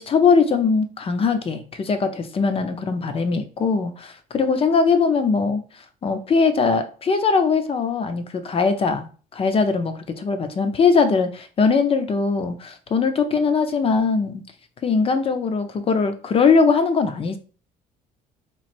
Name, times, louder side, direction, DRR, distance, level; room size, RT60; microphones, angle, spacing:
voice 1, 0.0-5.6 6.0-14.4 14.8-17.4, left 5 dB, 35° left, 0.5 m, -21 dB
3.0 x 2.4 x 4.2 m
cardioid pair, 110°, 17 cm